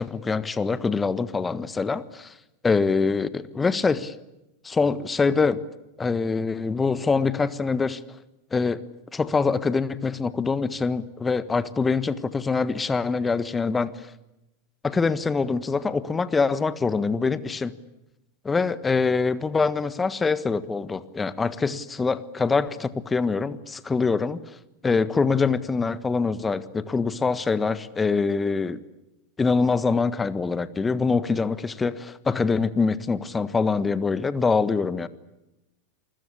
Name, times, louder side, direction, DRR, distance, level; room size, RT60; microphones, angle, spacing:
voice 1, 0.0-2.3 2.6-4.1 4.6-5.6 6.0-8.0 8.5-8.8 9.1-13.9 14.8-17.7 18.4-24.4 24.8-28.8 29.4-35.1, left 4 dB, 15° left, 14 dB, 1.5 m, -24 dB
28.0 x 21.0 x 8.4 m, 0.93 s
figure-of-eight pair, 90°, 0 cm